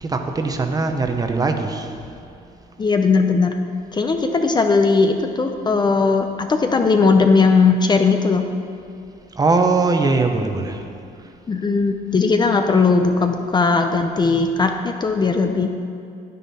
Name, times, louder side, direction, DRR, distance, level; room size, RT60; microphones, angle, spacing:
voice 1, 0.0-1.9 9.4-10.8, right 3 dB, 20° right, 5 dB, 0.9 m, -20 dB
voice 2, 2.8-3.6 3.9-8.4 11.5-15.7, left 4 dB, 25° left, 5 dB, 0.6 m, -18 dB
9.9 x 9.3 x 4.2 m, 2.5 s
cardioid pair, 110°, 17 cm